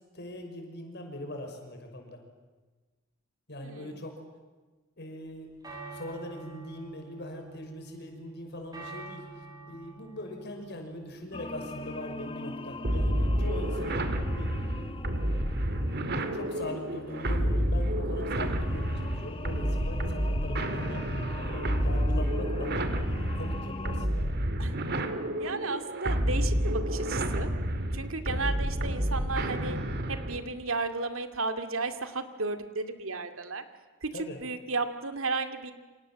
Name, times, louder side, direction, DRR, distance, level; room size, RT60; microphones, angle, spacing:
voice 1, 0.1-2.2 3.5-4.2 5.0-5.5 5.9-14.1 14.4-15.1 16.1-21.0 21.5-24.4 28.7-29.0 34.1-34.4, left 1 dB, 55° left, 4 dB, 6.0 m, -41 dB
voice 2, 3.6-3.9 24.6-24.8 25.4-27.5 27.9-29.8 30.1-33.6 34.0-35.7, right 3 dB, 75° right, 8 dB, 2.4 m, -34 dB
sound 1, 5.3-24.3, right 3 dB, 20° right, 7.5 m, -51 dB
sound 2, 11.3-24.1, left 2 dB, 25° left, 1.3 m, -43 dB
sound 3, 12.8-30.5, equal, 50° right, 2.3 m, -29 dB
28.5 x 27.0 x 7.7 m, 1.3 s
head